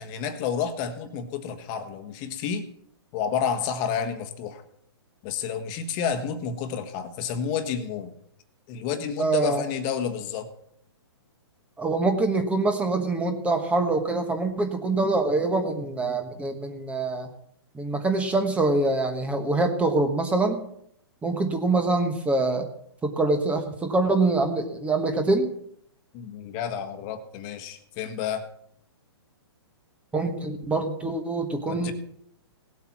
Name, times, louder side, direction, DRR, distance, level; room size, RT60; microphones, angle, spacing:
voice 1, 0.0-2.6 3.1-4.6 5.2-8.1 8.7-10.5 26.1-28.4 31.7-31.9, left 7 dB, 30° left, 8 dB, 1.4 m, -30 dB
voice 2, 9.2-9.6 11.8-17.3 17.7-20.6 21.2-22.7 23.0-25.5 30.1-31.9, right 2 dB, 10° right, 7 dB, 1.3 m, -24 dB
18.0 x 8.2 x 6.0 m, 0.69 s
hypercardioid pair, 150°, 14 cm